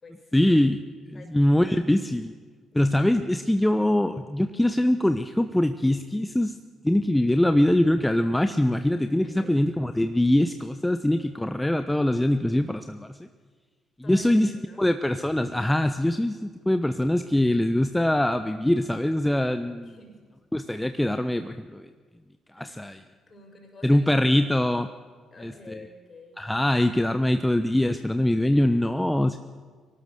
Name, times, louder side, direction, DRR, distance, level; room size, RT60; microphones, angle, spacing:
voice 1, 0.3-0.8 1.1-2.3 2.8-6.6 6.8-13.1 14.1-14.5 14.8-19.9 20.5-21.9 22.5-23.0 23.8-24.9 25.4-25.5 26.4-29.4, left 1 dB, 10° left, 9 dB, 0.9 m, -23 dB
voice 2, 9.2-9.6 14.0-14.9 19.8-20.2 22.6-22.9 23.3-24.4 25.3-26.4, left 1 dB, 35° left, 4 dB, 5.5 m, -47 dB
24.0 x 18.5 x 6.7 m, 1.5 s
figure-of-eight pair, 45°, 0 cm